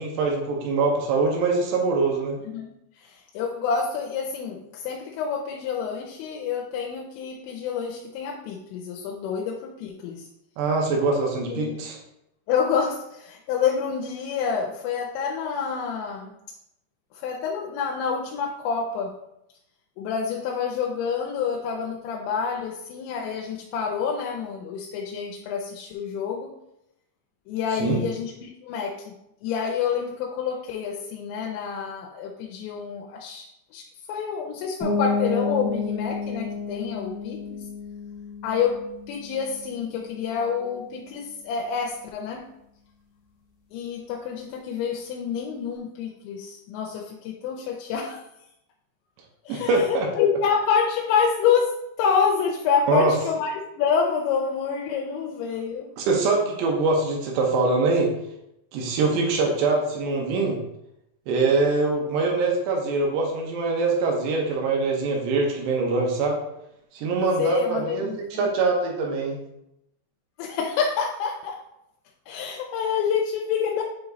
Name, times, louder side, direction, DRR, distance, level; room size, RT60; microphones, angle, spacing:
voice 1, 0.0-2.4 10.6-12.0 27.8-28.0 49.5-50.1 52.9-53.1 56.0-58.1 58.7-60.6 61.3-66.4 66.9-68.1 68.4-69.4, right 3 dB, 75° right, 0 dB, 2.7 m, -23 dB
voice 2, 3.0-10.3 11.5-11.8 12.5-16.4 17.1-19.1 20.0-26.5 27.5-29.1 29.4-37.6 38.4-38.8 39.1-42.5 43.7-48.2 49.5-55.9 67.4-68.5 70.4-71.6 72.3-73.8, left 6 dB, 85° left, 0 dB, 2.8 m, -27 dB
sound 1, 34.8-40.4, left 4 dB, 40° left, 1.2 m, -31 dB
8.1 x 3.0 x 3.9 m, 0.82 s
omnidirectional pair, 5.4 m